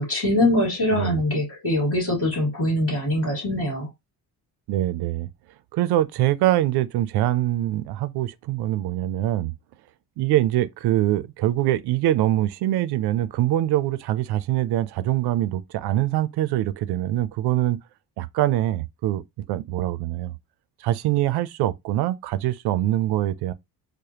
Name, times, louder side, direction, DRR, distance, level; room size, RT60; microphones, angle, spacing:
voice 1, 0.0-3.9, left 1 dB, 35° left, 2.6 m, -23 dB
voice 2, 0.9-1.2 4.7-5.3 5.7-9.5 10.2-17.8 18.2-19.2 19.5-20.3 20.8-23.5, right 14 dB, 85° right, 0.5 m, -23 dB
4.9 x 2.1 x 2.8 m
cardioid pair, 175°, 38 cm